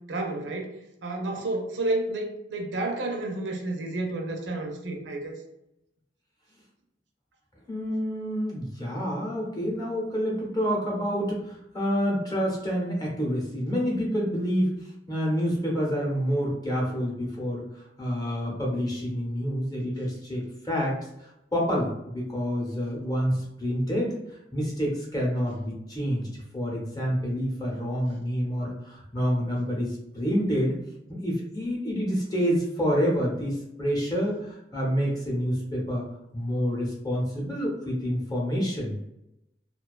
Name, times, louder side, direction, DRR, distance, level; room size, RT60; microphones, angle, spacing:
voice 1, 0.1-0.7 1.0-5.3, right 2 dB, 85° right, 2 dB, 0.5 m, -30 dB
voice 2, 7.7-24.2 24.5-30.7 31.1-36.0 36.3-39.0, equal, 20° left, -3 dB, 0.7 m, -28 dB
2.4 x 2.2 x 2.3 m, 0.86 s
head